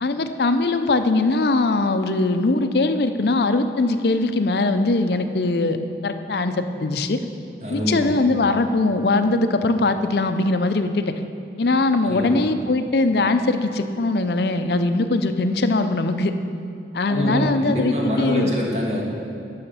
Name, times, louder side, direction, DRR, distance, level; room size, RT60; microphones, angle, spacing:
voice 1, 0.0-5.8 6.0-7.2 7.7-11.1 11.6-16.3 16.9-18.5, left 2 dB, 60° left, 9 dB, 0.5 m, -21 dB
voice 2, 7.6-8.2 12.0-12.4 17.1-19.0, equal, 35° right, -3 dB, 1.7 m, -25 dB
11.0 x 5.7 x 6.7 m, 2.6 s
head